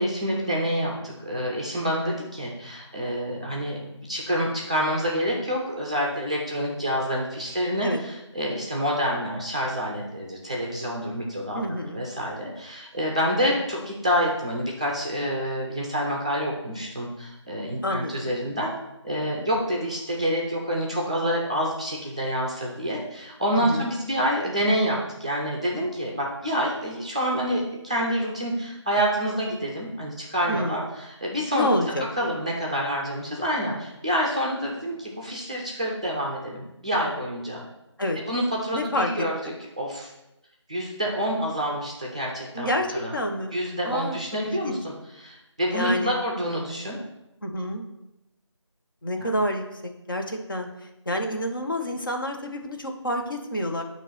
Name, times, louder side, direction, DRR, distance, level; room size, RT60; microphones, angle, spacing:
voice 1, 0.0-18.7 19.0-31.7 32.2-37.6 38.3-40.1 40.7-42.7 42.9-43.1 43.5-47.0 49.2-49.3, equal, 15° right, -2 dB, 0.6 m, -27 dB
voice 2, 11.5-12.0 17.8-18.4 23.5-23.9 30.5-30.9 31.5-32.1 38.0-38.2 38.7-39.5 42.5-43.6 43.8-44.2 44.5-44.8 45.7-46.2 47.4-47.8 49.0-53.8, left 1 dB, 45° left, 3 dB, 0.9 m, -28 dB
8.6 x 3.0 x 5.6 m, 0.92 s
figure-of-eight pair, 170°, 16 cm